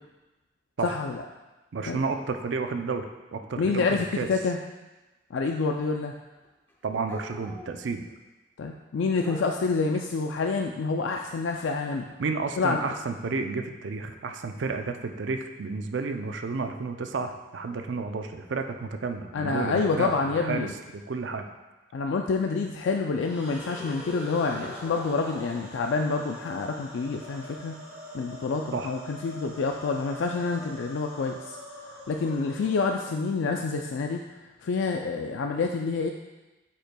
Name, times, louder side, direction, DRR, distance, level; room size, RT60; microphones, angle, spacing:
voice 1, 0.8-1.2 1.8-2.0 3.6-4.6 5.3-6.1 8.6-12.0 12.6-12.8 19.3-20.7 21.9-27.8 28.1-31.6 32.1-34.2 34.6-36.1, left 4 dB, 80° left, 3 dB, 0.4 m, -27 dB
voice 2, 1.7-4.3 6.8-8.1 12.2-21.5 28.7-28.9, right 4 dB, 75° right, 6 dB, 0.5 m, -31 dB
sound 1, 6.0-6.2 6.4-8.2 9.2-9.8 13.9-14.2 15.4-15.5 17.7-17.8 18.6-18.8, left 1 dB, 10° left, 0.7 m, -45 dB
sound 2, 23.2-33.4, left 1 dB, 5° right, 1.7 m, -43 dB
8.7 x 5.3 x 2.2 m, 1.1 s
head